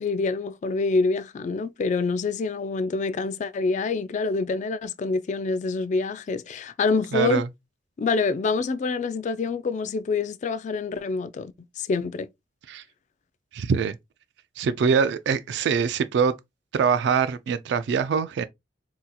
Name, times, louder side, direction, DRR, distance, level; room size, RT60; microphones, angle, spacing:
voice 1, 0.0-7.4 8.0-12.3, left 4 dB, 40° left, 0.3 m, -26 dB
voice 2, 7.1-7.5 12.7-12.8 13.5-14.0 14.6-16.4 16.7-18.5, right 6 dB, 65° right, 0.3 m, -23 dB
3.9 x 2.8 x 2.2 m
head